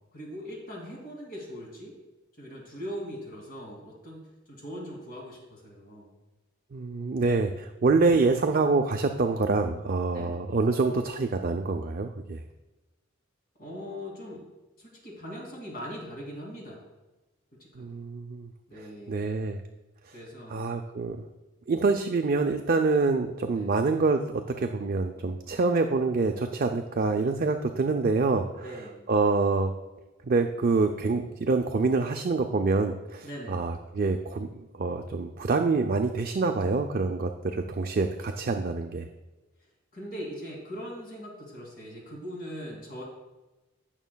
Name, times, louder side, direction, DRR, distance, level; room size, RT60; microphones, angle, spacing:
voice 1, 0.0-1.9 2.4-6.1 10.1-10.4 13.6-14.5 14.8-16.8 17.6-17.9 18.7-19.2 20.1-20.7 23.5-23.7 28.5-29.0 33.2-33.7 39.6-43.0, equal, 45° left, -2 dB, 2.5 m, -41 dB
voice 2, 6.7-12.4 17.8-18.5 19.1-19.6 20.5-21.2 21.7-28.5 29.1-29.7 30.2-39.1, right 3 dB, 45° right, 5 dB, 0.5 m, -26 dB
16.0 x 6.4 x 2.3 m, 1.1 s
head